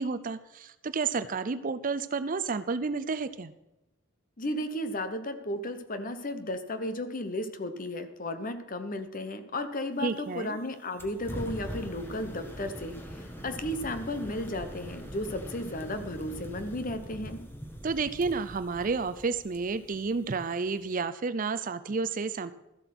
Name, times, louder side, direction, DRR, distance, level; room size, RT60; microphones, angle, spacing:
voice 1, 0.0-3.5 10.0-10.6 17.8-22.5, right 4 dB, 40° right, 13 dB, 0.5 m, -31 dB
voice 2, 4.4-17.4, left 1 dB, 40° left, 9 dB, 1.0 m, -34 dB
sound 1, 11.0-21.0, equal, 10° left, 1.3 m, -42 dB
13.5 x 7.9 x 6.0 m, 0.92 s
head